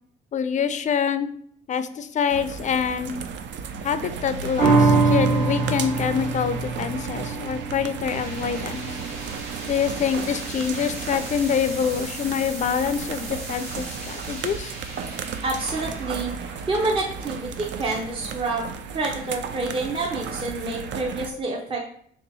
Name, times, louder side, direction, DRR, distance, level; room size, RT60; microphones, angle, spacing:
voice 1, 0.3-1.3 1.7-3.1 3.8-8.9 9.7-14.8, left 7 dB, 40° left, 11 dB, 0.4 m, -26 dB
sound 1, 2.3-21.3, right 6 dB, 65° right, 0.5 m, -34 dB
sound 2, 4.6-11.3 11.7-11.8, right 3 dB, 50° right, 1.4 m, -25 dB
sound 3, 8.1-19.2, right 2 dB, 85° right, 1.6 m, -40 dB
voice 2, 15.4-16.3 16.7-18.6 18.9-21.9, right 2 dB, 25° right, -1 dB, 0.6 m, -28 dB
3.4 x 2.8 x 4.0 m, 0.62 s
cardioid pair, 90°, 20 cm